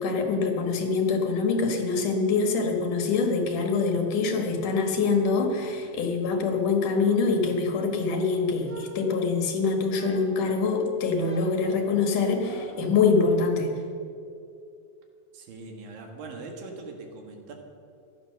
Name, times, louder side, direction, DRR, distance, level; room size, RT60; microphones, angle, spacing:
voice 1, 0.0-13.7, left 4 dB, 70° left, 3 dB, 3.0 m, -25 dB
sound 1, 8.6-9.5 9.9-10.5 11.2-13.0, right 1 dB, 20° right, 2.4 m, -42 dB
voice 2, 15.3-17.5, right 3 dB, 80° right, 3 dB, 3.5 m, -41 dB
15.0 x 11.5 x 6.6 m, 2.5 s
omnidirectional pair, 4.0 m